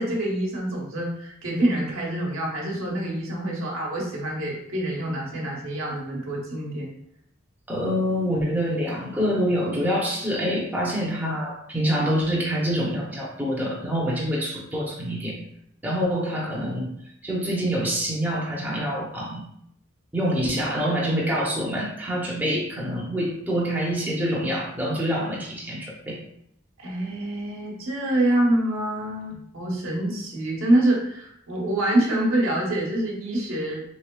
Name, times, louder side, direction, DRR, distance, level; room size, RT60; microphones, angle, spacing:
voice 1, 0.0-6.9 26.8-33.8, right 1 dB, 90° right, -2 dB, 1.0 m, -26 dB
voice 2, 7.7-15.4 15.8-16.9 17.2-19.4 20.1-26.2, equal, 10° right, -4 dB, 0.6 m, -26 dB
3.6 x 3.2 x 2.2 m, 0.74 s
head